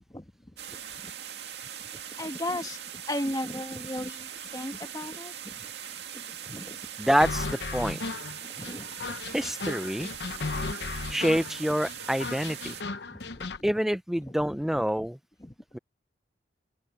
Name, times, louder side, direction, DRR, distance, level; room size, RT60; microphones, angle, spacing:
sound 1, 0.6-12.8, right 9 dB, 75° right, 2.2 m, -41 dB
voice 1, 2.2-2.8 3.1-5.5 6.1-6.8 8.6-9.2 13.1-13.5 15.4-15.5, left 1 dB, 20° left, 1.1 m, -36 dB
voice 2, 7.0-8.0 9.3-10.1 11.1-12.7 13.6-15.2 15.7-15.8, equal, ahead, 0.4 m, -27 dB
sound 2, 7.2-13.6, left 3 dB, 75° left, 0.8 m, -35 dB
open air
head